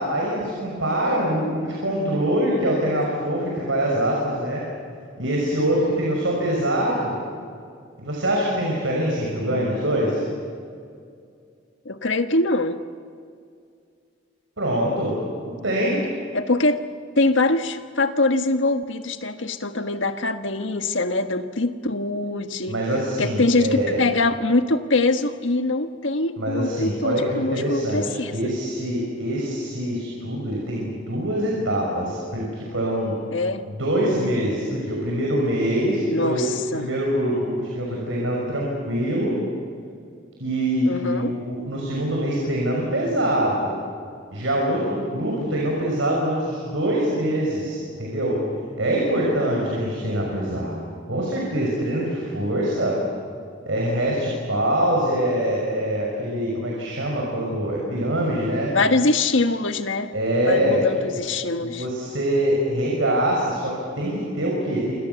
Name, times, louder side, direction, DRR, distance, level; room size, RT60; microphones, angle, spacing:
voice 1, 0.0-4.6 5.2-7.1 8.0-10.2 14.6-15.1 15.4-16.0 22.7-24.0 26.4-33.1 33.6-39.4 40.4-43.7 44.3-48.4 48.8-50.8 51.1-53.0 53.7-58.7 60.1-60.8 61.6-64.9, right 1 dB, 85° right, -2 dB, 6.2 m, -24 dB
voice 2, 11.8-12.8 16.3-16.8 17.2-22.8 23.2-28.5 33.3-33.6 36.1-36.9 40.9-41.3 58.7-60.1 60.4-61.9, left 2 dB, 75° left, 8 dB, 1.4 m, -23 dB
29.0 x 26.5 x 7.1 m, 2.3 s
head